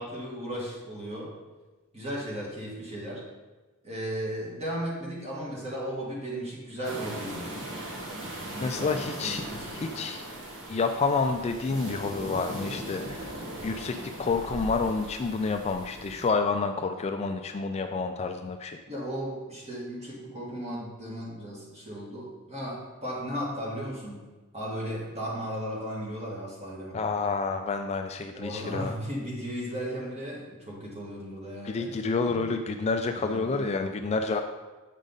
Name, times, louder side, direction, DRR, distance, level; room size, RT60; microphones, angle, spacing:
voice 1, 0.0-1.4 1.9-3.3 3.8-7.5 8.5-9.9 18.9-24.2 24.5-27.0 28.3-31.9 32.2-32.6 33.1-33.8, equal, 30° right, -4 dB, 1.8 m, -36 dB
sound 1, 6.8-16.3, right 1 dB, 60° right, 1.2 m, -39 dB
voice 2, 8.6-9.4 9.8-10.3 10.7-13.4 13.6-18.8 26.9-28.9 31.6-34.4, left 4 dB, 30° left, 6 dB, 0.3 m, -29 dB
8.2 x 5.1 x 3.9 m, 1.2 s
head